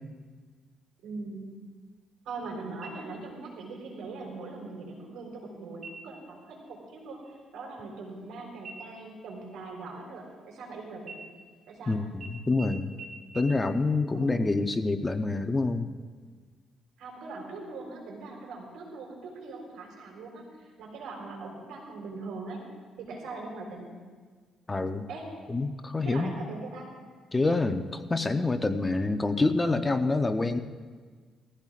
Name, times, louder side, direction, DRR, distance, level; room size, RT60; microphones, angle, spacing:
voice 1, 1.0-1.4 2.2-11.2 11.7-12.0 14.1-14.3 17.0-22.6 23.0-23.9 25.1-25.3 26.0-26.9, right 3 dB, 85° right, -1 dB, 4.0 m, -41 dB
sound 1, 2.8-3.5 3.9-4.0 4.5-5.0 5.7-6.3 6.7-6.9 7.2-8.3 8.6-10.6 11.0-11.8 12.2-12.3 12.6-12.7 13.0-13.1 13.3-13.4, right 4 dB, 45° right, 2.4 m, -47 dB
voice 2, 11.9-12.9 13.3-15.9 24.7-25.0 25.5-26.4 27.3-30.6, left 3 dB, 20° left, 8 dB, 0.8 m, -27 dB
20.0 x 15.0 x 2.5 m, 1.5 s
cardioid pair, 90°, 0 cm